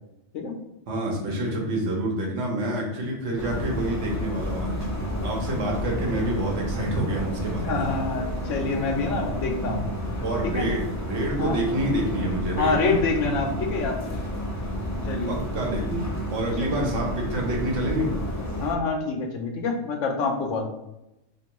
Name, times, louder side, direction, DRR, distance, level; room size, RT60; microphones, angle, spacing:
voice 1, 0.9-4.8 5.2-7.8 10.2-13.0 15.2-18.1, right 1 dB, 75° right, 0 dB, 1.2 m, -28 dB
sound 1, 3.4-18.7, equal, 25° left, 0.4 m, -30 dB
voice 2, 7.6-9.9 10.4-10.7 11.4-11.6 12.6-14.2 15.1-15.4 16.6-16.9 18.6-20.7, left 3 dB, 75° left, 3 dB, 1.0 m, -27 dB
3.4 x 2.9 x 2.9 m, 0.88 s
omnidirectional pair, 1.3 m